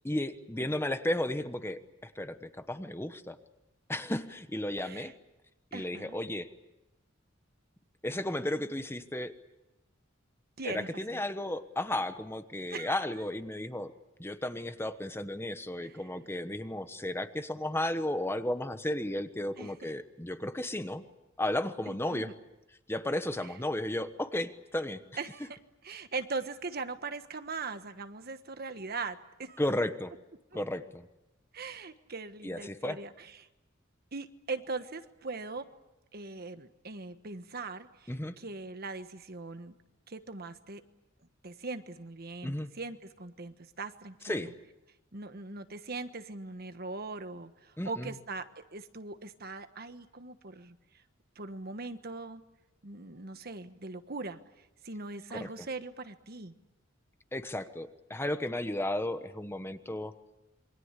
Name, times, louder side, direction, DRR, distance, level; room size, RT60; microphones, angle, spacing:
voice 1, 0.0-3.4 3.9-5.1 5.7-6.5 8.0-9.3 10.6-13.9 14.2-21.0 21.4-22.3 22.9-25.0 29.6-30.1 30.5-31.1 32.4-33.0 38.1-38.4 42.4-42.7 44.2-44.5 47.8-48.1 55.3-55.5 57.3-60.1, left 1 dB, 10° left, 10 dB, 1.1 m, -34 dB
voice 2, 4.8-5.1 5.7-6.2 10.6-11.2 12.7-13.0 15.8-16.0 19.6-19.7 21.9-22.3 23.4-23.5 25.2-29.6 31.5-33.5 34.1-35.7 36.1-39.7 40.1-40.8 41.4-44.5 45.1-50.8 51.3-52.4 52.8-54.4 54.8-56.5, right 3 dB, 50° right, 10 dB, 1.4 m, -40 dB
27.5 x 23.5 x 8.3 m, 0.95 s
head